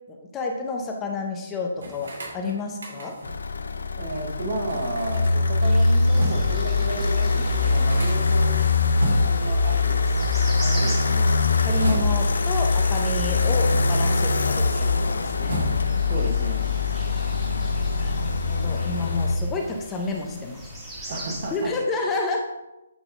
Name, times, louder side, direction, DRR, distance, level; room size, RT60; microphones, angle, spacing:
voice 1, 0.1-3.2 11.6-15.6 17.9-20.6 21.0-21.1 21.5-22.4, left 3 dB, 15° left, 1 dB, 0.6 m, -30 dB
sound 1, 1.8-3.4 4.7-6.6 7.0-7.1 7.3-9.5 10.6-12.5 13.2-14.5 14.8-16.1, equal, 80° right, 2.1 m, -35 dB
sound 2, 3.2-19.4, left 3 dB, 80° left, 0.5 m, -22 dB
voice 2, 4.0-8.6 9.2-10.0 10.6-11.4 16.1-16.7 21.1-21.7, right 2 dB, 45° right, 3 dB, 1.1 m, -33 dB
sound 3, 5.6-21.7, right 1 dB, 15° right, 1.5 m, -40 dB
8.1 x 3.4 x 3.6 m, 0.97 s
hypercardioid pair, 155°, 0 cm